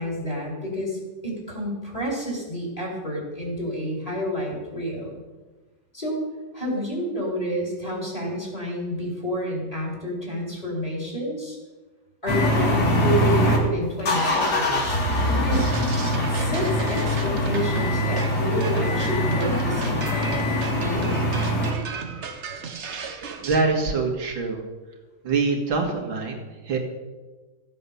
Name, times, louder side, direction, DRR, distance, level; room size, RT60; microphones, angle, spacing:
voice 1, 0.0-5.2 5.9-6.2 6.5-11.6 12.2-15.0 15.3-15.7 16.2-21.1, equal, 20° left, -3 dB, 4.3 m, -29 dB
sound 1, 12.3-13.6 14.0-21.7, left 1 dB, 55° left, 2.8 m, -23 dB
sound 2, 15.5-23.6, right 5 dB, 45° right, 1.1 m, -35 dB
voice 2, 23.4-24.6 25.2-26.8, right 4 dB, 85° right, 1 dB, 2.8 m, -24 dB
15.5 x 7.8 x 6.9 m, 1.2 s
omnidirectional pair, 2.1 m